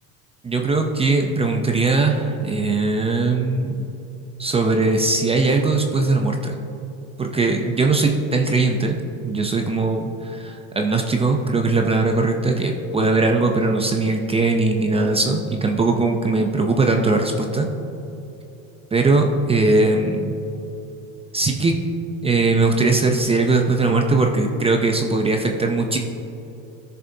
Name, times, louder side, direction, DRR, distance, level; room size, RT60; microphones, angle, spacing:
voice 1, 0.4-3.7 4.4-6.6 7.2-9.0 9.2-17.7 18.9-20.4 21.3-21.8 22.2-26.0, right 3 dB, 15° right, 3 dB, 0.6 m, -20 dB
14.0 x 6.8 x 2.7 m, 3.0 s
supercardioid pair, 120°, 35 cm